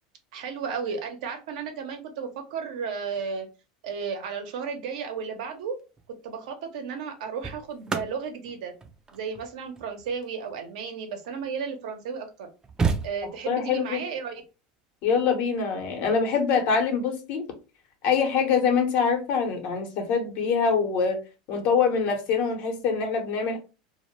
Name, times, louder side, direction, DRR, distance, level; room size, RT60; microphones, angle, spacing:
voice 1, 0.3-3.5 3.8-5.8 6.2-8.7 9.1-12.5 13.0-14.4, right 6 dB, 80° right, 0.7 m, -33 dB
sound 1, 5.8-6.1 7.0-11.6 12.1-12.2 12.4-13.7 15.4-15.6, right 5 dB, 20° right, 0.4 m, -33 dB
voice 2, 13.5-14.0 15.0-17.4 18.0-21.2 21.5-23.6, left 6 dB, 60° left, 0.8 m, -24 dB
2.1 x 2.1 x 3.0 m
supercardioid pair, 115°, 4 cm